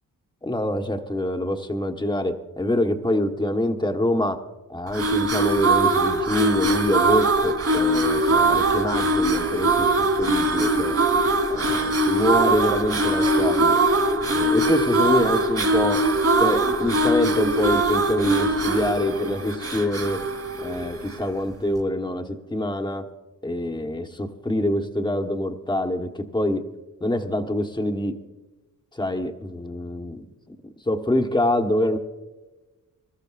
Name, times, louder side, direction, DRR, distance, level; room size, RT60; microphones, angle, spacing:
voice 1, 0.4-4.4 4.7-11.0 11.5-13.8 14.3-16.1 16.4-20.3 20.6-23.1 23.4-26.7 27.0-28.2 28.9-30.6 30.8-32.0, left 1 dB, 15° left, 6 dB, 1.2 m, -25 dB
sound 1, 4.9-21.3, right 2 dB, 50° right, 3.2 m, -21 dB
24.0 x 13.5 x 2.5 m, 1.2 s
cardioid pair, 100°, 33 cm